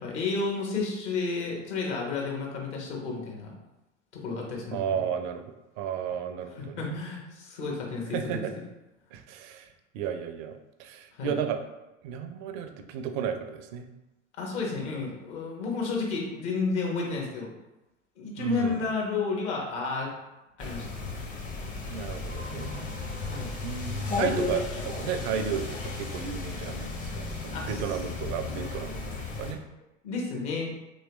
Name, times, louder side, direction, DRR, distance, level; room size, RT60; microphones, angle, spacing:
voice 1, 0.0-3.5 4.1-5.0 6.6-8.4 11.2-11.4 14.4-17.5 18.2-20.1 20.6-20.9 23.2-23.5 27.5-27.8 30.0-30.7, left 4 dB, 60° left, -1 dB, 1.2 m, -31 dB
voice 2, 4.7-5.4 5.8-7.0 8.1-8.5 9.1-9.7 9.9-11.6 12.0-13.9 18.4-18.9 21.9-22.8 23.6-29.6, right 7 dB, 40° right, 7 dB, 0.4 m, -33 dB
sound 1, 20.6-29.5, left 3 dB, 20° left, 0.6 m, -34 dB
3.1 x 3.0 x 3.0 m, 0.98 s
figure-of-eight pair, 85°, 38 cm